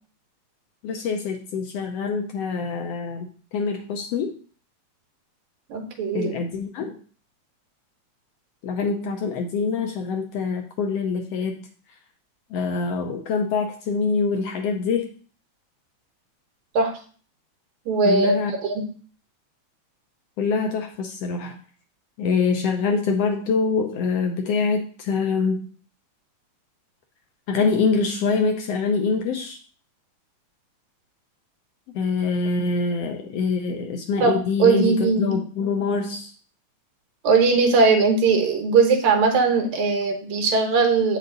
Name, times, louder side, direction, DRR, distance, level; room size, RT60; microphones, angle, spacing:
voice 1, 0.8-3.3 3.5-4.3 6.1-7.0 8.6-11.7 12.5-15.1 18.0-18.5 20.4-21.6 22.2-25.7 27.5-29.6 31.9-36.3, left 4 dB, 70° left, 4 dB, 1.6 m, -25 dB
voice 2, 5.7-6.4 16.7-16.9 17.9-18.4 18.7-18.8 34.2-35.4 37.2-41.2, right 4 dB, 80° right, 4 dB, 2.5 m, -19 dB
8.1 x 5.3 x 3.9 m, 0.42 s
omnidirectional pair, 3.3 m